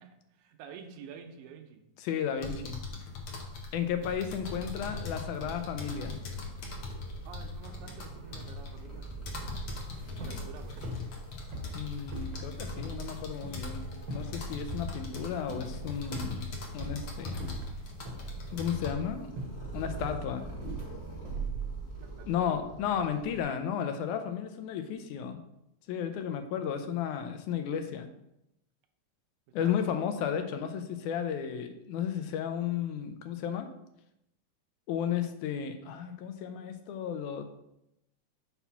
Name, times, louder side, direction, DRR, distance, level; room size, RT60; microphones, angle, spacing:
voice 1, 0.0-1.8 7.3-9.8 10.1-10.9 22.0-22.5 29.5-29.8, right 7 dB, 75° right, 5 dB, 2.1 m, -49 dB
voice 2, 2.0-2.8 3.7-6.2 11.7-16.5 16.7-17.5 18.5-19.3 19.7-20.5 22.3-25.4 25.9-28.1 29.5-33.7 34.9-37.4, left 8 dB, 80° left, 7 dB, 2.0 m, -33 dB
sound 1, 2.4-18.9, left 2 dB, 60° left, 1.4 m, -41 dB
Purr, 4.1-23.4, right 3 dB, 40° left, 0.9 m, -46 dB
sound 2, 9.9-22.1, right 2 dB, 60° right, 1.4 m, -40 dB
5.8 x 4.2 x 5.6 m, 0.83 s
omnidirectional pair, 3.7 m